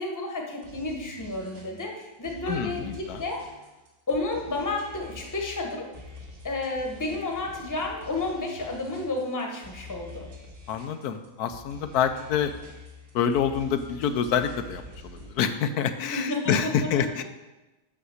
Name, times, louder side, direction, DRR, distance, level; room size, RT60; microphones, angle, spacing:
voice 1, 0.0-3.4 4.1-5.9 6.4-10.3 16.1-16.9, left 2 dB, 15° left, 1 dB, 0.9 m, -31 dB
sound 1, 0.6-15.4, left 2 dB, 75° right, 2.1 m, -46 dB
voice 2, 2.5-3.2 10.7-12.5 13.1-17.2, left 8 dB, 85° left, 9 dB, 1.1 m, -27 dB
6.1 x 5.7 x 6.4 m, 1.1 s
omnidirectional pair, 1.6 m